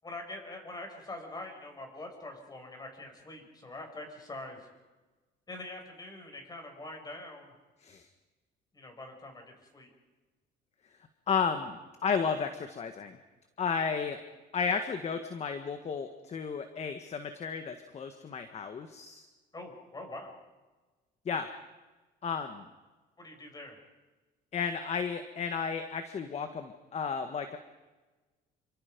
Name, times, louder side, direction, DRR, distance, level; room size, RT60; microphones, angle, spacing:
voice 1, 0.0-4.7 5.5-7.6 8.7-9.9 19.5-20.3 23.2-23.8, left 2 dB, 25° left, 3 dB, 7.0 m, -44 dB
voice 2, 11.3-13.2 13.6-14.2 14.5-19.3 21.3-21.5 22.2-22.7 24.5-27.6, left 6 dB, 40° left, 8 dB, 1.7 m, -33 dB
29.0 x 25.0 x 5.4 m, 1.2 s
cardioid pair, 110°, 17 cm